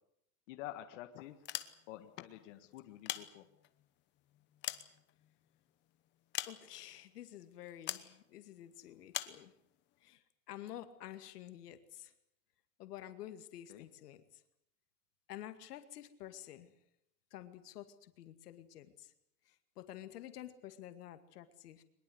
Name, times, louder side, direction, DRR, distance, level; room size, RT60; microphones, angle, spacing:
voice 1, 0.5-1.4 1.9-3.5 13.7-13.9, left 14 dB, 50° left, 7 dB, 1.8 m, -48 dB
sound 1, 1.3-2.1 2.8-3.8 4.3-5.6 6.3-7.0 7.9-8.1 9.1-9.4, left 15 dB, 25° left, 1.0 m, -42 dB
voice 2, 6.5-9.5 10.0-12.1 12.8-14.4 15.3-16.7 17.3-19.1 19.5-21.8, left 12 dB, 85° left, 9 dB, 2.3 m, -50 dB
23.0 x 21.0 x 8.0 m, 0.77 s
supercardioid pair, 165°, 45 cm